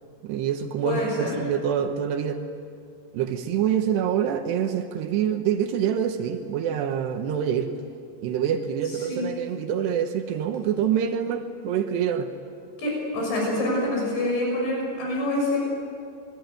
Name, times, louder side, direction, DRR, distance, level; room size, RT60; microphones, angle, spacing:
voice 1, 0.2-2.4 3.1-7.7 8.2-12.3, right 8 dB, 75° right, 6 dB, 3.2 m, -26 dB
voice 2, 0.8-1.3 8.9-9.2 12.8-15.6, left 1 dB, 85° left, -2 dB, 8.3 m, -26 dB
27.5 x 22.5 x 9.3 m, 2.4 s
omnidirectional pair, 5.0 m